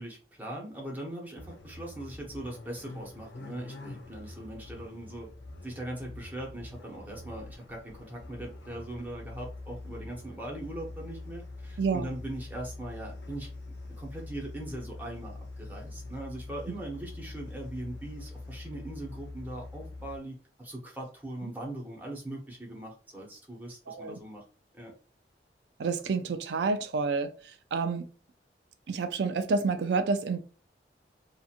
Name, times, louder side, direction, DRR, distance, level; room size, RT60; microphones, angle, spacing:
voice 1, 0.0-5.3 5.6-13.5 13.9-24.4 24.7-24.9, right 1 dB, 10° right, 0.8 m, -40 dB
sound 1, 1.4-20.2, left 2 dB, 80° left, 0.5 m, -44 dB
voice 2, 11.8-12.1 21.4-21.5 23.9-24.2 25.8-27.3 27.7-28.1 28.9-30.4, right 4 dB, 80° right, 0.4 m, -29 dB
2.8 x 2.4 x 2.4 m
head